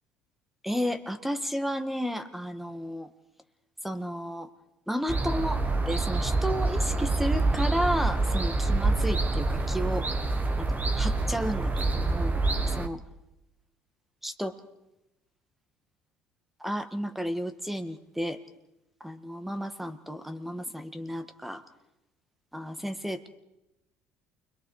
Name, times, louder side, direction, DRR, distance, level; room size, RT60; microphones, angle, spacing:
voice 1, 0.6-3.1 3.8-4.5 4.9-10.1 10.6-13.0 14.2-14.6 16.6-18.4 19.0-21.6 22.5-23.3, equal, 5° right, 9 dB, 1.9 m, -32 dB
sound 1, 5.1-12.9, right 3 dB, 25° right, 1.6 m, -26 dB
29.0 x 22.0 x 4.9 m, 0.91 s
supercardioid pair, 75°, 6 cm